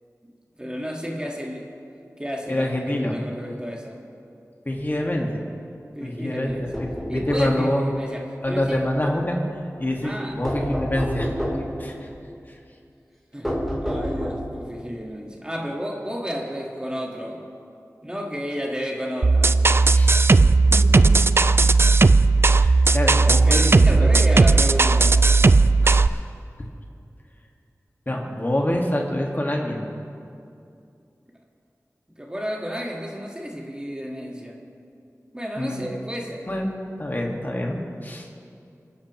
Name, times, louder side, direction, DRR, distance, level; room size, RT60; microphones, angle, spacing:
voice 1, 0.6-1.7 2.2-4.0 5.9-6.8 7.1-8.8 10.0-10.4 13.3-13.5 13.8-17.4 18.0-19.6 23.2-25.3 32.1-34.7 35.3-36.5, equal, 15° right, 0 dB, 1.7 m, -32 dB
voice 2, 2.5-3.2 4.6-5.4 6.0-7.8 8.4-9.4 9.8-12.1 12.5-12.6 19.9-20.3 20.7-21.0 21.4-21.5 22.5-24.1 25.8-26.0 28.0-29.9 35.6-35.9 36.5-36.7 37.0-38.3, left 1 dB, 35° left, 0 dB, 1.8 m, -26 dB
sound 1, 6.5-7.5 10.4-11.8 13.4-14.6, equal, ahead, 3.5 m, -29 dB
sound 2, 19.2-26.1, right 3 dB, 45° right, 0.3 m, -16 dB
28.5 x 10.5 x 3.1 m, 2.5 s
wide cardioid pair, 50°, 6 cm